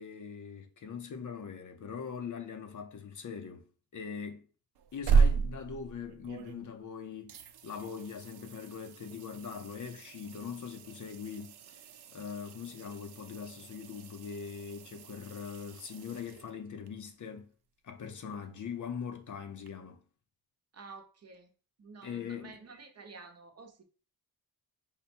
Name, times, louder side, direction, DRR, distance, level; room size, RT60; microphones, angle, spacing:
voice 1, 0.0-3.7 3.9-4.5 4.9-7.3 7.6-11.8 12.1-17.5 17.8-20.0 22.0-22.5, left 6 dB, 50° left, 0.7 m, -41 dB
sound 1, 4.7-6.9 7.3-16.9 19.7-19.8, right 5 dB, 80° right, 0.7 m, -34 dB
voice 2, 20.7-21.5 21.8-23.8, right 4 dB, 40° right, 0.9 m, -50 dB
5.3 x 2.2 x 4.3 m
wide cardioid pair, 135°, 39 cm